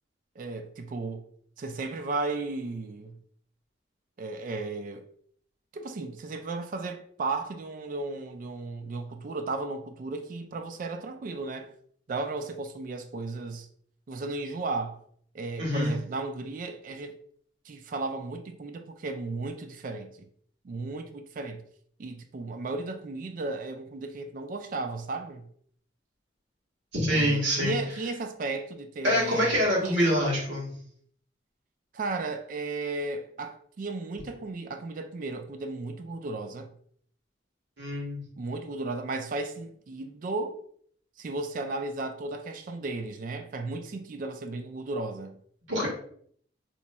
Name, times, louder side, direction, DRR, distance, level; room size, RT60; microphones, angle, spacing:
voice 1, 0.4-1.3 1.6-3.2 4.2-5.1 5.7-11.7 12.1-13.7 14.1-15.0 15.3-17.1 17.7-20.3 20.6-21.6 22.0-25.5 27.1-30.2 31.9-36.7 38.4-40.6 41.2-45.4, right 3 dB, 45° right, 0.3 m, -35 dB
voice 2, 15.6-15.9 26.9-27.8 29.0-30.7 37.8-38.2 45.7-45.9, equal, 80° right, 1.4 m, -25 dB
2.9 x 2.2 x 4.1 m
head